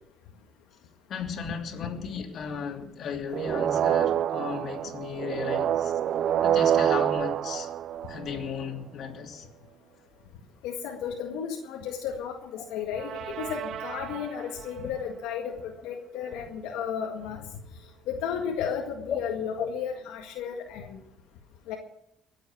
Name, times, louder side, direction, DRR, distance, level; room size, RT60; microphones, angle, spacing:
voice 1, 1.1-5.9 6.4-7.7 8.1-9.5 12.6-12.7 19.1-19.2 19.6-19.7, left 6 dB, 55° left, 2.9 m, -35 dB
sound 1, 3.3-8.6 12.9-14.6, right 10 dB, 60° right, 0.4 m, -27 dB
voice 2, 10.6-17.5 18.1-21.0 21.7-21.8, left 7 dB, 90° left, 1.8 m, -33 dB
22.5 x 7.9 x 6.1 m
cardioid pair, 95°, 0 cm